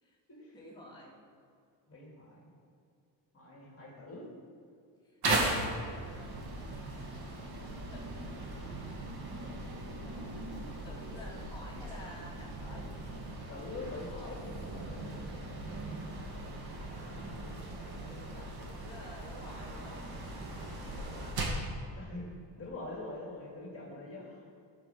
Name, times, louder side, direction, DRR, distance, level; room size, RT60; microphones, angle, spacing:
voice 1, 0.5-1.2 5.0-6.4 6.8-7.2 7.9-8.6 10.8-12.9 13.8-14.4 18.1-20.2 20.5-21.4, left 1 dB, 10° left, -6 dB, 2.7 m, -52 dB
voice 2, 1.9-2.5 3.3-4.3 13.5-15.5 21.0-21.2 22.0-22.3 22.6-24.4, left 2 dB, 30° left, -3 dB, 2.6 m, -44 dB
sound 1, 5.2-21.7, right 2 dB, 60° right, 2.6 m, -38 dB
16.0 x 5.8 x 7.1 m, 2.5 s
cardioid pair, 135°, 43 cm